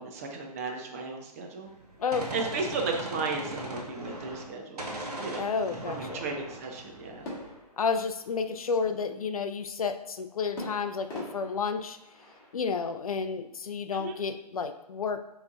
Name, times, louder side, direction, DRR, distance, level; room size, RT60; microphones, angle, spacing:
voice 1, 0.0-1.7 2.3-5.5 5.9-7.3 13.9-14.1, right 4 dB, 20° right, 2 dB, 0.4 m, -35 dB
Gunshot gunfire, 1.7-4.5 4.8-7.5, right 1 dB, 65° right, 1.2 m, -39 dB
voice 2, 5.4-6.2 7.8-12.0 12.5-15.2, left 5 dB, 60° left, 9 dB, 0.4 m, -31 dB
sound 1, 7.2-8.8 10.6-12.6, left 1 dB, 15° left, 1.4 m, -43 dB
6.4 x 3.1 x 2.4 m, 0.89 s
figure-of-eight pair, 130°, 21 cm